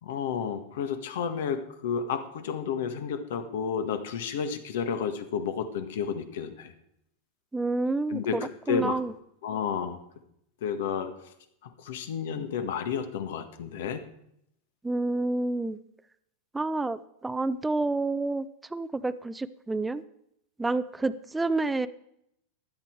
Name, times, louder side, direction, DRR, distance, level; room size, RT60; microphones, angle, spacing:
voice 1, 0.0-6.7 8.1-9.0 9.4-10.0 10.6-11.1 11.6-14.0, left 7 dB, 70° left, 8 dB, 1.6 m, -31 dB
voice 2, 7.5-8.4 8.7-9.1 14.8-15.8 16.5-18.5 18.7-20.0 20.6-21.9, right 2 dB, 10° right, 12 dB, 0.6 m, -29 dB
15.5 x 11.0 x 4.6 m, 0.77 s
hypercardioid pair, 95°, 0 cm